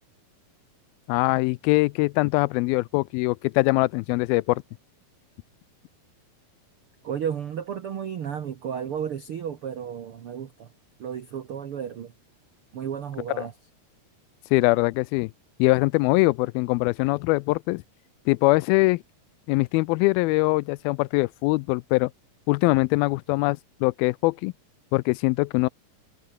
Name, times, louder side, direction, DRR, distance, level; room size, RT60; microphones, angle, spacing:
voice 1, 1.1-4.6 13.4-13.5 14.5-15.3 15.6-17.8 18.3-19.0 19.5-22.1 22.5-24.5 24.9-25.7, left 23 dB, 85° left, 2.3 m, -22 dB
voice 2, 7.0-10.7 11.0-12.1 12.7-13.5, right 8 dB, 65° right, 1.3 m, -33 dB
omnidirectional pair, 4.4 m